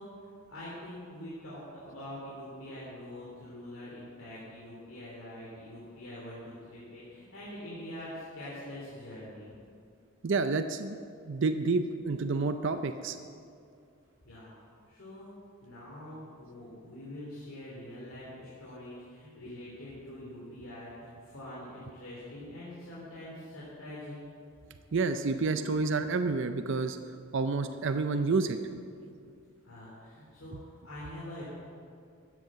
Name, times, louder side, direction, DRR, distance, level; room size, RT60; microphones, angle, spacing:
voice 1, 0.0-9.6 14.2-14.5 14.9-15.4 15.6-24.4 29.6-31.4, left 1 dB, 70° left, -7 dB, 3.0 m, -44 dB
voice 2, 10.2-11.0 11.3-13.2 24.9-27.0 27.3-28.6, right 3 dB, 55° right, 8 dB, 0.5 m, -29 dB
13.5 x 8.2 x 7.5 m, 2.4 s
head